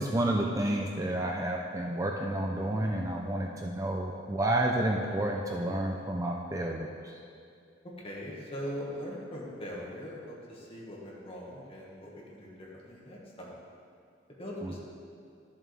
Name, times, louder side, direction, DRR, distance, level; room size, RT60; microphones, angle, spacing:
voice 1, 0.0-7.1, right 1 dB, 20° right, 0 dB, 0.5 m, -30 dB
voice 2, 7.8-13.7 14.4-14.8, equal, 30° left, -4 dB, 1.8 m, -41 dB
12.5 x 7.4 x 3.5 m, 2.4 s
head